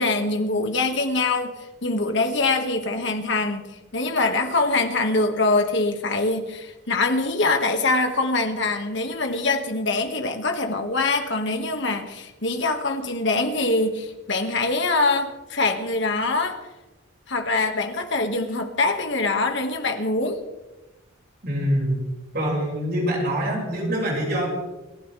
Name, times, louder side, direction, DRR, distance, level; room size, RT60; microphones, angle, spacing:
voice 1, 0.0-1.5 1.8-3.6 3.9-16.6 17.3-20.4, left 3 dB, 60° left, 5 dB, 2.0 m, -24 dB
voice 2, 21.4-22.0 22.3-24.5, equal, 50° right, -2 dB, 5.9 m, -24 dB
29.0 x 12.0 x 3.5 m, 1.1 s
head